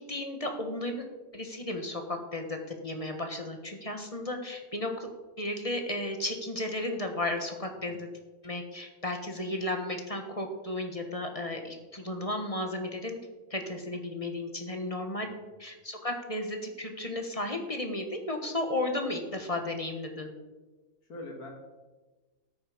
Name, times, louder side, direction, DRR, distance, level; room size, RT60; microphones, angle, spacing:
voice 1, 0.1-1.1 1.3-5.1 5.4-8.1 8.4-13.2 13.5-15.3 15.6-20.3, left 1 dB, 25° left, 4 dB, 1.4 m, -34 dB
voice 2, 15.2-15.5 21.1-21.5, left 2 dB, 85° left, 0 dB, 2.6 m, -43 dB
13.0 x 9.4 x 5.1 m, 1.2 s
omnidirectional pair, 1.6 m